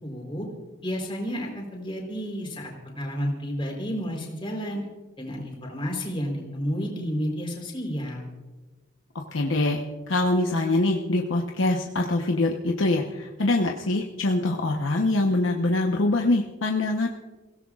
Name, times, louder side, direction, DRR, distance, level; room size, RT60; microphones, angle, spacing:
voice 1, 0.0-0.5 0.8-4.8 5.2-8.3, equal, 25° left, 0 dB, 3.8 m, -31 dB
voice 2, 9.1-17.1, left 2 dB, 80° left, 1 dB, 1.0 m, -24 dB
29.5 x 16.5 x 2.4 m, 1.3 s
head